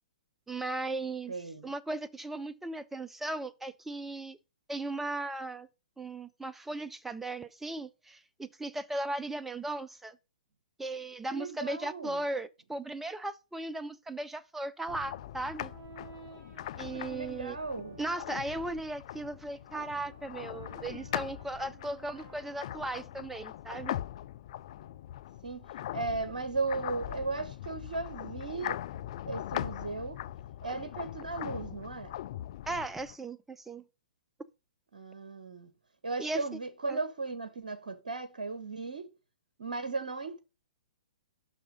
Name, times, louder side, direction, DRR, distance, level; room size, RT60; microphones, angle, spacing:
voice 1, 0.5-1.3 1.6-4.4 4.7-5.7 6.0-10.2 10.8-15.7 16.8-17.6 18.0-24.0 32.7-33.8 36.2-36.4 36.9-37.0, right 2 dB, 5° right, 0.5 m, -37 dB
voice 2, 1.3-1.7 11.3-12.2 16.7-18.0 25.4-28.8 29.3-30.2 30.6-32.1 34.9-35.7 36.0-39.1 39.6-40.4, right 3 dB, 65° right, 1.3 m, -36 dB
sound 1, 14.9-33.2, left 13 dB, 45° left, 0.4 m, -41 dB
Brass instrument, 14.9-18.8 19.4-23.5, right 5 dB, 25° right, 1.9 m, -54 dB
6.1 x 5.7 x 5.1 m
figure-of-eight pair, 120°, 5 cm